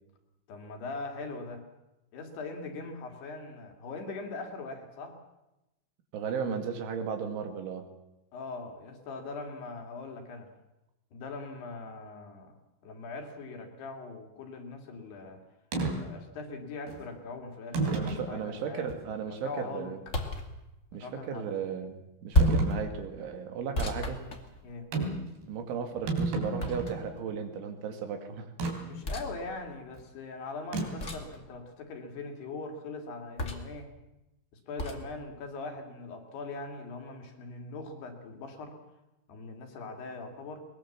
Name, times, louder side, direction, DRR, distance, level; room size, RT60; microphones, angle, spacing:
voice 1, 0.5-1.6 2.1-5.2 8.3-10.5 11.1-12.6 12.8-15.4 16.0-20.1 20.9-21.4 24.6-24.9 28.8-33.9 34.7-38.8 39.3-40.6, left 3 dB, 60° left, 3 dB, 4.2 m, -41 dB
voice 2, 6.1-7.9 17.8-20.0 20.9-24.2 25.5-28.5, right 6 dB, 75° right, 6 dB, 4.6 m, -35 dB
plastic gas container put down on pavement empty, 15.7-16.0 16.9-17.0 17.7-18.3 18.9-19.0 22.4-22.8 24.9-25.3 25.6-25.7 25.9-27.0 28.6-28.8 30.7-31.1, right 3 dB, 60° right, 5.0 m, -30 dB
sound 1, 20.1-20.5 22.3-22.7 23.7-24.9 26.6-27.2 29.0-29.3 31.0-31.4 33.4-33.8 34.8-35.0, equal, 35° left, 1.1 m, -30 dB
22.0 x 20.5 x 7.3 m, 0.95 s
omnidirectional pair, 5.5 m